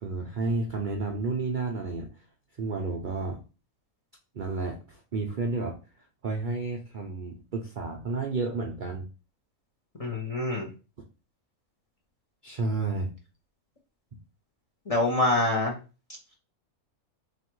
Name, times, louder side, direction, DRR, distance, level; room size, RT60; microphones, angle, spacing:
voice 1, 0.0-2.1 2.6-3.4 4.3-5.7 6.2-9.0 12.4-13.1, right 3 dB, 55° right, 1 dB, 0.5 m, -31 dB
voice 2, 10.0-10.7 14.9-15.7, left 2 dB, 30° left, 0 dB, 0.7 m, -25 dB
3.2 x 3.0 x 4.5 m, 0.32 s
omnidirectional pair, 1.5 m